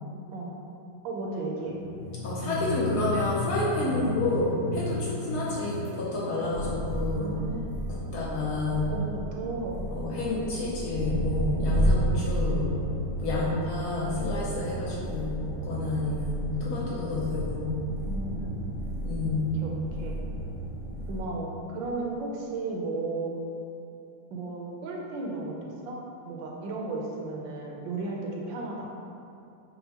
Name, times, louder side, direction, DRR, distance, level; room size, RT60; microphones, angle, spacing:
voice 1, 1.0-1.8 7.2-7.8 8.9-9.9 10.6-10.8 18.0-18.7 19.6-19.7 20.0-20.2 21.1-23.3 24.3-26.0 26.2-28.9, right 3 dB, 80° right, -2 dB, 1.3 m, -34 dB
sound 1, 1.6-21.2, equal, 50° left, 0.3 m, -32 dB
voice 2, 2.2-7.3 7.9-8.9 9.9-12.7 13.2-17.6 19.0-19.5, left 2 dB, 65° left, -6 dB, 1.1 m, -30 dB
5.5 x 2.2 x 2.8 m, 2.7 s
omnidirectional pair, 2.0 m